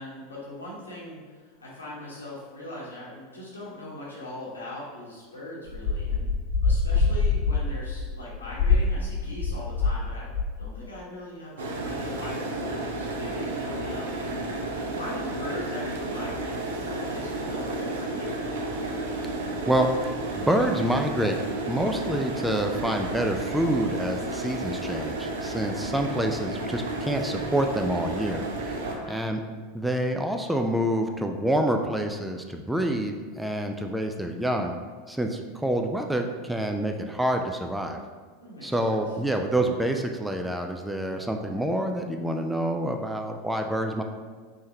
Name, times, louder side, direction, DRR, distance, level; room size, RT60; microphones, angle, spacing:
voice 1, 0.0-6.2 6.6-10.3 10.6-14.1 14.8-18.4 28.8-29.2 38.4-39.0, left 1 dB, 85° left, -6 dB, 1.0 m, -40 dB
sound 1, 5.7-10.0 10.3-10.7, left 4 dB, 50° left, 0.7 m, -25 dB
sound 2, 11.6-29.0, right 2 dB, 70° right, 0.5 m, -32 dB
voice 2, 20.3-21.4 21.7-28.8 29.1-29.4 29.7-34.7 35.1-38.0 38.6-44.0, right 1 dB, 5° right, 4 dB, 0.3 m, -27 dB
3.6 x 3.1 x 2.8 m, 1.5 s
figure-of-eight pair, 85°, 0 cm